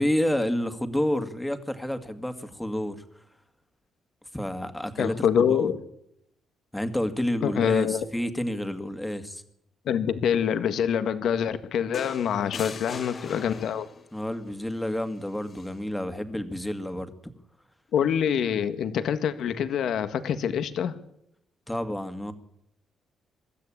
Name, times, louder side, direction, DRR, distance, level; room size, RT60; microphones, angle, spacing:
voice 1, 0.0-3.0 4.3-5.7 6.7-9.4 12.4-12.8 14.1-17.1 21.7-22.3, left 1 dB, 5° left, 8 dB, 2.2 m, -29 dB
voice 2, 5.0-5.8 7.4-8.0 9.9-13.9 17.9-20.9, left 8 dB, 70° left, 11 dB, 1.7 m, -25 dB
sound 1, 11.9-14.1 15.5-15.7, left 5 dB, 40° left, 1.5 m, -40 dB
24.0 x 13.0 x 8.7 m, 0.78 s
cardioid pair, 90°, 0 cm